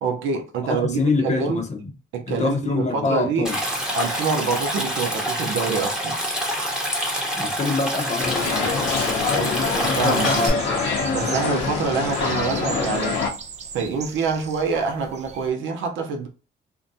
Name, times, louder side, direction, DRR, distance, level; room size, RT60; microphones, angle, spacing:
voice 1, 0.0-1.6 2.1-3.5 3.9-6.2 9.3-10.6 11.1-13.2 13.7-16.3, right 5 dB, 75° right, 0.6 m, -26 dB
voice 2, 0.7-1.9 2.3-3.6 7.4-8.7 9.4-10.8, left 3 dB, 35° left, 0.7 m, -25 dB
Stream, 3.4-10.5, equal, 5° right, 0.9 m, -26 dB
sound 1, 8.2-13.3, left 5 dB, 65° left, 0.8 m, -25 dB
sound 2, 8.9-15.5, right 5 dB, 35° right, 0.4 m, -38 dB
2.6 x 2.2 x 2.6 m
cardioid pair, 90°, 20 cm